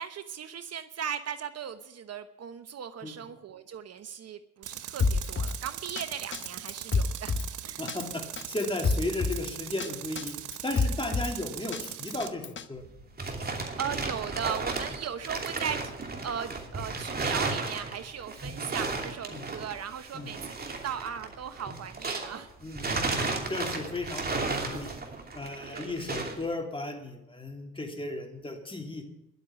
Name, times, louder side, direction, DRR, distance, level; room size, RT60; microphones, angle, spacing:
voice 1, 0.0-7.4 7.6-7.8 13.5-22.5 25.7-26.0, right 8 dB, 55° right, 11 dB, 1.0 m, -38 dB
Tools, 4.6-12.3, right 12 dB, 80° right, 1.1 m, -40 dB
Drum kit, 5.0-5.6 6.0-6.1 6.3-7.5 7.9-8.0 8.4-9.4 9.8-9.9 10.2-11.3 11.7-12.6, left 4 dB, 40° left, 1.0 m, -28 dB
voice 2, 7.8-10.4 10.6-12.8 19.3-19.4 20.1-20.3 22.6-23.2 23.5-24.9 25.3-29.0, left 2 dB, 15° left, 3 dB, 2.9 m, -35 dB
sound 1, 12.8-22.4 22.7-26.4, right 3 dB, 30° right, 2.7 m, -34 dB
11.5 x 8.2 x 9.7 m, 0.85 s
cardioid pair, 90°, 30 cm